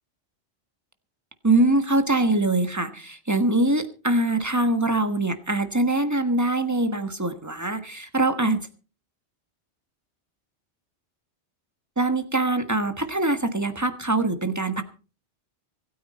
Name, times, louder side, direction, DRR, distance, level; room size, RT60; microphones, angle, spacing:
voice 1, 1.4-8.7 12.0-14.8, right 2 dB, 15° right, 9 dB, 1.4 m, -23 dB
25.5 x 9.4 x 4.2 m, 0.36 s
omnidirectional pair, 1.2 m